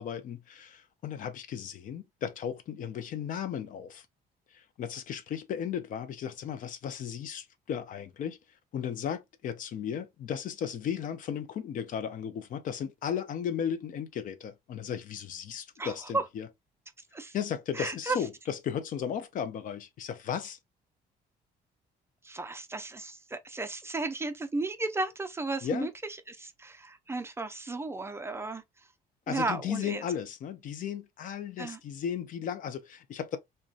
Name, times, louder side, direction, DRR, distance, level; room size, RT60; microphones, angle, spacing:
voice 1, 0.0-4.1 4.5-8.4 8.7-16.5 17.3-20.6 25.6-25.9 29.3-33.4, left 8 dB, 50° left, 0.5 m, -35 dB
voice 2, 15.8-16.3 17.1-17.3 17.7-18.2 22.2-28.9 29.3-30.1 31.6-31.8, right 3 dB, 15° right, 0.4 m, -34 dB
2.6 x 2.2 x 2.4 m
cardioid pair, 110°, 17 cm